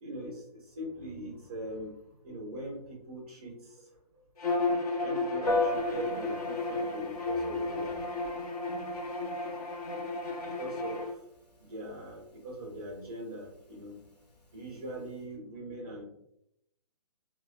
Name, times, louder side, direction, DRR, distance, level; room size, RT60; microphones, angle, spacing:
voice 1, 0.0-4.2 5.0-8.1 10.4-11.1 11.6-14.0 14.5-16.0, right 1 dB, 15° right, -3 dB, 0.4 m, -41 dB
Bowed string instrument, 4.4-11.1, left 2 dB, 65° left, 0.7 m, -33 dB
Piano, 5.5-15.2, left 2 dB, 85° left, 1.0 m, -39 dB
3.3 x 2.0 x 2.3 m, 0.77 s
hypercardioid pair, 165°, 21 cm